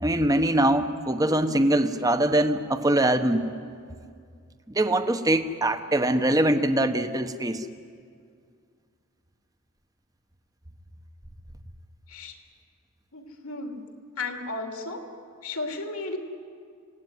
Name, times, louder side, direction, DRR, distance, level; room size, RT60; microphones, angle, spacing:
voice 1, 0.0-3.5 4.7-7.7, right 1 dB, 15° right, 8 dB, 1.0 m, -23 dB
voice 2, 13.1-13.8 14.2-15.0 15.4-16.2, left 3 dB, 80° left, 4 dB, 3.0 m, -34 dB
29.5 x 18.0 x 9.6 m, 2.2 s
head